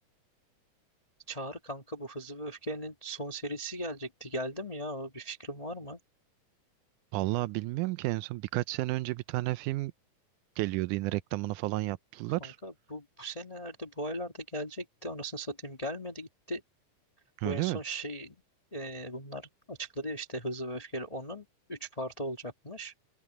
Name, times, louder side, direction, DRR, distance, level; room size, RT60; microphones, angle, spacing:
voice 1, 1.3-6.0 12.4-16.6 17.4-18.4 18.7-22.9, right 1 dB, 50° left, 0.4 m, -38 dB
voice 2, 7.1-9.9 10.6-12.6 17.4-17.8, right 19 dB, 80° right, 2.0 m, -31 dB
open air
omnidirectional pair, 3.7 m